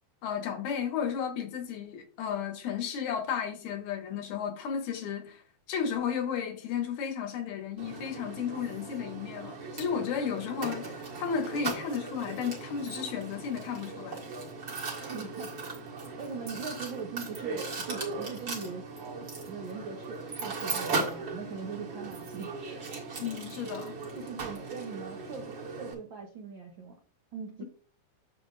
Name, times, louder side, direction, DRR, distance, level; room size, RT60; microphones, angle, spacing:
voice 1, 0.2-5.4 5.7-14.2 23.2-24.0, left 7 dB, 75° left, 2.2 m, -33 dB
Mechanisms, 7.8-25.9, right 3 dB, 40° right, 2.3 m, -38 dB
voice 2, 14.9-15.5 16.2-18.9 19.2-22.9 24.2-26.9 27.3-27.6, right 5 dB, 80° right, 1.1 m, -41 dB
8.9 x 6.8 x 2.6 m
omnidirectional pair, 3.5 m